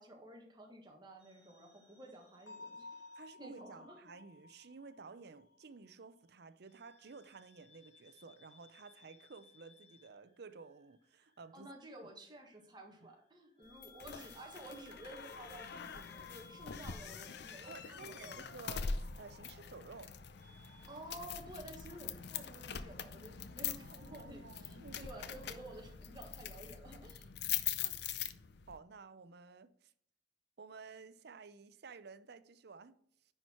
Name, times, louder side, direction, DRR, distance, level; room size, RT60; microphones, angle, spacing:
voice 1, 0.0-2.9 3.4-4.1 11.5-18.4 20.8-27.3, right 1 dB, 25° right, 1.7 m, -52 dB
sound 1, 1.2-4.0 4.3-5.5 6.7-21.0, left 5 dB, 35° left, 2.5 m, -62 dB
Bell, 2.5-6.1, left 3 dB, 80° left, 1.2 m, -54 dB
voice 2, 3.1-11.7 12.0-12.1 13.0-13.1 17.7-20.2 23.7-25.1 25.4-25.5 27.8-28.0 28.7-29.9 30.6-33.0, right 4 dB, 60° right, 0.6 m, -53 dB
sound 2, 13.8-28.8, left 7 dB, 65° left, 0.6 m, -43 dB
9.9 x 4.5 x 4.5 m
head